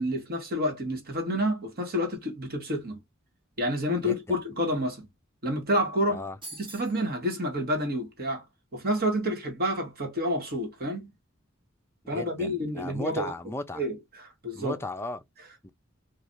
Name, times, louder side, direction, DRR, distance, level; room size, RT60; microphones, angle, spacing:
voice 1, 0.0-3.0 3.6-5.1 5.4-6.2 6.6-8.4 8.7-11.1 12.1-13.3 13.7-14.8, equal, 50° right, 1.3 m, -29 dB
voice 2, 4.0-4.4 6.1-6.4 12.0-13.8 14.5-15.2 15.6-15.7, left 2 dB, 10° left, 0.4 m, -36 dB
sound 1, 6.4-7.0, right 2 dB, 25° right, 1.1 m, -43 dB
3.2 x 2.3 x 2.6 m
head